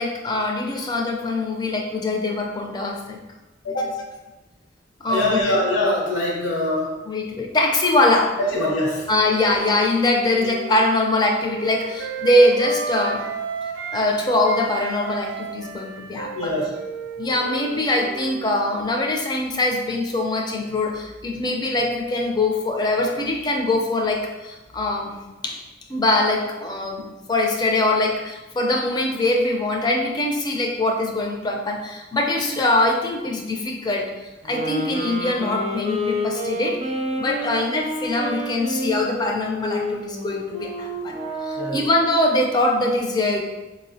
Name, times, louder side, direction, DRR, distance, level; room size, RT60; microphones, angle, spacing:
voice 1, 0.0-3.2 3.7-4.0 5.0-5.6 7.1-8.3 9.1-13.2 13.9-16.6 17.2-25.1 25.4-25.6 25.9-34.1 34.4-36.8 37.2-41.2 41.4-43.4, left 2 dB, 20° left, 1 dB, 0.4 m, -22 dB
voice 2, 5.1-7.0 8.4-9.1 16.3-16.7 41.6-41.8, left 1 dB, 70° left, -3 dB, 0.8 m, -23 dB
Wind instrument woodwind instrument, 9.6-14.1 14.4-18.9, right 4 dB, 85° right, 0.4 m, -33 dB
sound 1, 34.4-42.0, equal, 30° right, 0.5 m, -29 dB
4.2 x 2.0 x 2.6 m, 1.1 s
head